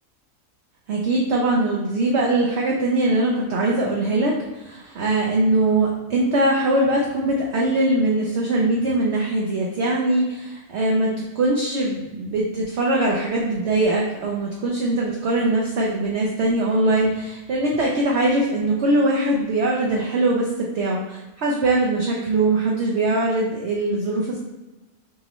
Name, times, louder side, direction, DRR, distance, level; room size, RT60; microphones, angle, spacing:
voice 1, 0.9-20.5 20.7-24.4, right 2 dB, 65° right, -2 dB, 0.7 m, -21 dB
5.9 x 2.1 x 2.9 m, 1.1 s
omnidirectional pair, 1.6 m